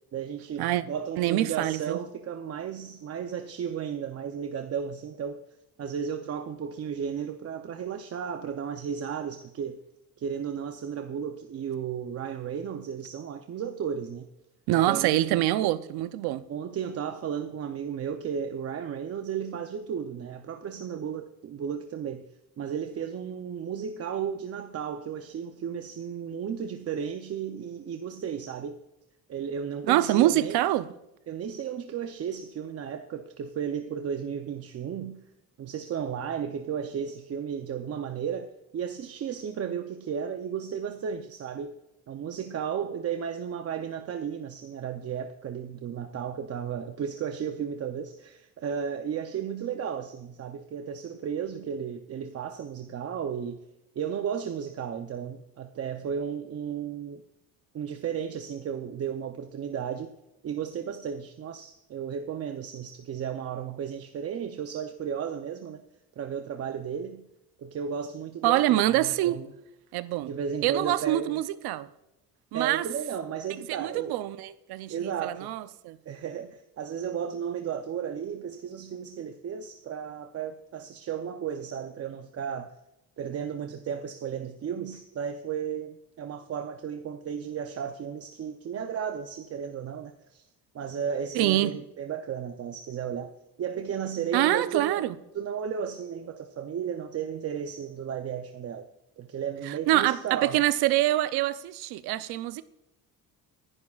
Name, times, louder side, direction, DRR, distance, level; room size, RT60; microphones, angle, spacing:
voice 1, 0.1-5.4 5.8-9.8 10.2-14.3 14.9-15.4 16.5-22.3 22.6-28.8 29.3-30.6 31.3-35.2 35.6-41.8 42.1-53.6 53.9-57.2 57.7-60.1 60.4-65.8 66.2-67.3 67.6-69.5 70.2-71.4 72.5-74.2 74.9-75.5 76.1-82.7 83.2-90.4 90.7-93.3 93.6-95.0 95.3-98.9 99.2-100.6, right 7 dB, 40° right, 0.6 m, -34 dB
voice 2, 1.2-2.0 14.7-16.4 29.9-30.9 68.4-69.4 69.9-70.3 70.6-71.9 72.5-72.8 73.7-76.0 91.3-91.7 94.3-95.2 99.7-102.6, right 14 dB, 90° right, 0.7 m, -25 dB
24.5 x 11.0 x 2.4 m
cardioid pair, 125°, 37 cm